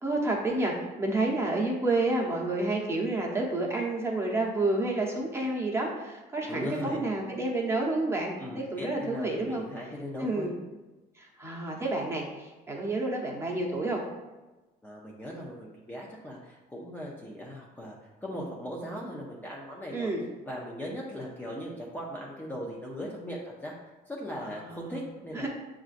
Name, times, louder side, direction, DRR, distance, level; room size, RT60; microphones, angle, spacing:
voice 1, 0.0-9.6 10.2-10.6 11.1-14.0 19.9-20.2 24.6-25.0 25.3-25.5, right 2 dB, 15° right, -2 dB, 0.9 m, -29 dB
voice 2, 6.5-7.0 7.3-7.4 8.4-10.5 14.8-18.0 18.2-20.1 20.4-23.7 24.1-25.5, equal, 10° left, -4 dB, 0.6 m, -39 dB
7.0 x 2.5 x 2.5 m, 1.2 s
cardioid pair, 110°, 17 cm